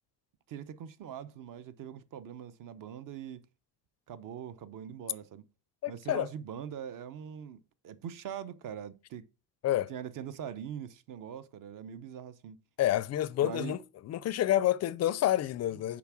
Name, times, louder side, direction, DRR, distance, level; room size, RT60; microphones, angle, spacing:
voice 1, 0.5-3.4 4.1-5.4 5.9-9.3 9.9-12.6 13.4-13.8 15.7-16.0, right 9 dB, 45° right, 0.7 m, -42 dB
voice 2, 5.8-6.3 9.6-9.9 12.8-13.8 14.1-16.0, left 13 dB, 40° left, 0.4 m, -28 dB
7.1 x 4.9 x 6.0 m
cardioid pair, 140°, 44 cm